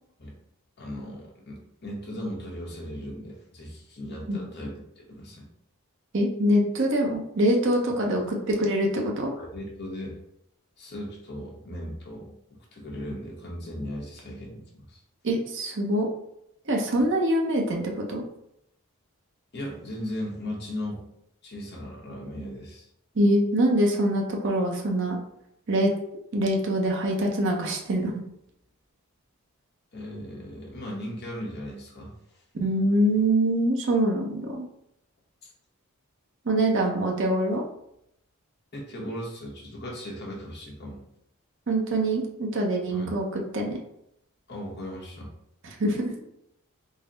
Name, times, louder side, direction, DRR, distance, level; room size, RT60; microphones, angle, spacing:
voice 1, 0.8-4.8 5.1-5.4 9.4-10.2 10.8-15.0 17.0-17.1 19.5-21.1 21.4-22.9 29.9-32.1 35.4-35.5 38.7-41.0 42.9-43.1 44.5-45.3, left 1 dB, 45° left, -3 dB, 1.0 m, -37 dB
voice 2, 6.1-9.3 15.2-16.1 16.7-18.2 23.2-25.2 25.7-25.9 26.3-28.2 32.6-34.6 36.5-37.6 41.7-43.8 45.8-46.2, right 1 dB, 55° right, 0 dB, 0.7 m, -24 dB
3.9 x 2.0 x 3.9 m, 0.78 s
head